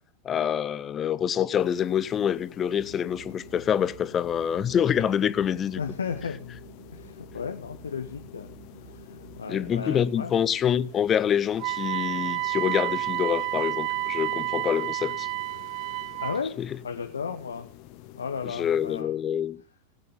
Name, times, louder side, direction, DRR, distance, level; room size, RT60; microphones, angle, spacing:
voice 1, 0.2-5.8 9.5-15.3 16.6-16.7 18.6-19.6, left 9 dB, 25° left, 0.7 m, -26 dB
sound 1, 1.5-19.0, left 14 dB, 45° left, 1.1 m, -49 dB
sound 2, 2.7-10.0, right 9 dB, 75° right, 1.1 m, -50 dB
voice 2, 5.8-6.6 6.9-10.5 16.2-16.6 16.8-17.7 18.1-19.1, left 6 dB, 70° left, 0.9 m, -35 dB
Wind instrument woodwind instrument, 11.6-16.4, right 17 dB, 40° right, 0.5 m, -30 dB
18.0 x 9.0 x 3.6 m
figure-of-eight pair, 90°, 0 cm